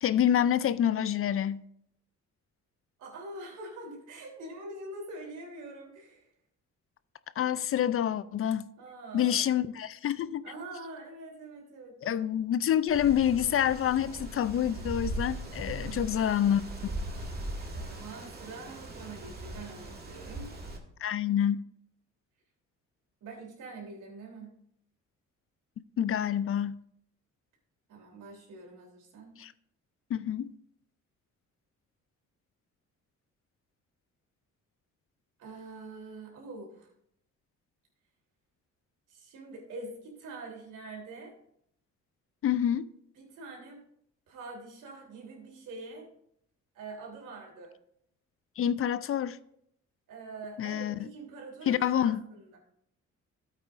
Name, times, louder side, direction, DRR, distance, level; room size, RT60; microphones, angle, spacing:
voice 1, 0.0-1.6 7.4-8.7 9.1-10.4 12.0-16.9 21.0-21.6 26.0-26.8 29.4-29.5 30.1-30.5 42.4-42.9 48.6-49.4 50.6-51.1 51.7-52.2, left 10 dB, 45° left, 0.4 m, -27 dB
voice 2, 3.0-6.3 8.8-9.6 10.4-12.2 15.8-16.3 17.7-20.5 23.2-24.5 27.9-29.3 35.4-36.9 39.1-41.3 43.1-43.8 44.3-46.1 46.7-47.7 50.1-52.6, right 2 dB, 80° right, 3.4 m, -45 dB
Wind, 12.9-20.8, right 1 dB, 30° right, 1.9 m, -39 dB
13.0 x 8.3 x 2.5 m
cardioid pair, 90°, 30 cm